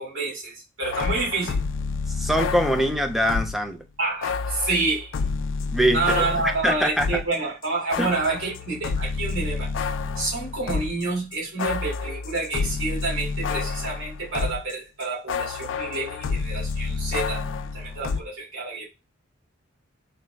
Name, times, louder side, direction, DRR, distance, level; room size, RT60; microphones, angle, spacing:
voice 1, 0.0-1.6 4.0-5.2 5.9-9.9 10.2-17.4 17.7-18.8, right 3 dB, 85° right, 2.0 m, -28 dB
sound 1, 0.8-3.7 4.2-7.4 7.6-14.7 15.0-18.2, left 4 dB, 70° left, 0.4 m, -29 dB
voice 2, 2.1-3.8 5.7-6.3 6.6-7.2 8.0-8.1, equal, ahead, 0.4 m, -23 dB
3.9 x 2.4 x 3.1 m
head